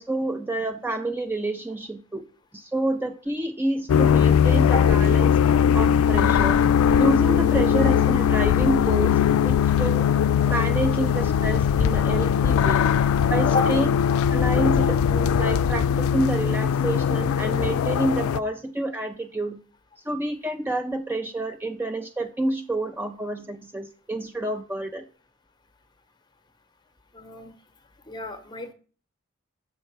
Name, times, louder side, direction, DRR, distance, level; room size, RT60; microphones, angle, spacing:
voice 1, 0.0-2.3 2.5-5.4 5.7-6.6 7.0-9.2 9.4-10.1 10.5-12.8 13.3-13.9 14.3-19.6 20.0-25.1, right 1 dB, 10° right, 6 dB, 0.4 m, -28 dB
sound 1, 3.9-18.4, left 8 dB, 85° left, 0.3 m, -20 dB
voice 2, 27.1-27.5 28.1-28.7, left 1 dB, 20° left, 8 dB, 0.9 m, -30 dB
6.6 x 6.4 x 4.5 m, 0.40 s
head